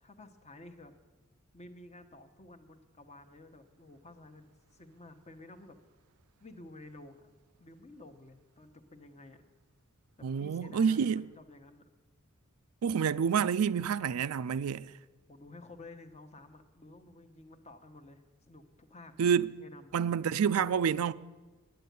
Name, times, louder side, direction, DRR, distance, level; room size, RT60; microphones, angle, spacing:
voice 1, 0.0-0.9 1.5-5.8 6.4-7.3 7.6-9.4 10.2-11.9 15.3-19.2 19.6-19.9, left 2 dB, 30° left, 1.0 m, -52 dB
voice 2, 10.2-11.3 12.8-14.9 19.2-19.6 19.9-21.1, right 7 dB, 80° right, 0.4 m, -28 dB
9.5 x 9.2 x 9.3 m
head